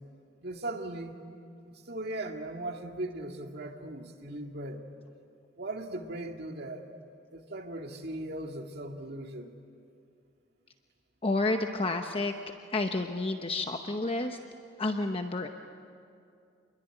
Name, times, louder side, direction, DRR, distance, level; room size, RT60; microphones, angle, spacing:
voice 1, 0.4-1.1 1.9-4.8 5.6-6.8 7.3-9.5, right 1 dB, 60° right, 3 dB, 2.2 m, -38 dB
voice 2, 11.2-12.3 12.7-14.4 14.8-15.5, left 2 dB, 30° left, 5 dB, 0.9 m, -30 dB
28.0 x 22.0 x 9.1 m, 2.5 s
head